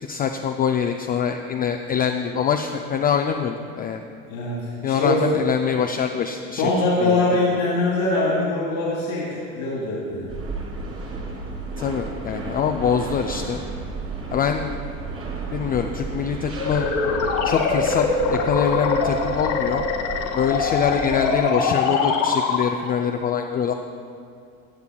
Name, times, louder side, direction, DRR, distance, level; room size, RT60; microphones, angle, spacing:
voice 1, 0.0-4.0 4.8-6.7 7.0-7.2 11.8-13.6 14.3-14.8 15.5-16.9 17.4-19.9 20.3-23.7, left 7 dB, 25° left, 4 dB, 0.3 m, -24 dB
voice 2, 4.3-5.2 6.6-10.3, left 2 dB, 85° left, -6 dB, 1.8 m, -23 dB
sound 1, 10.3-21.3, right 3 dB, 35° right, 2.0 m, -33 dB
sound 2, 16.6-23.0, left 4 dB, 50° left, 1.3 m, -23 dB
14.0 x 8.1 x 2.3 m, 2.3 s
hypercardioid pair, 85°, 39 cm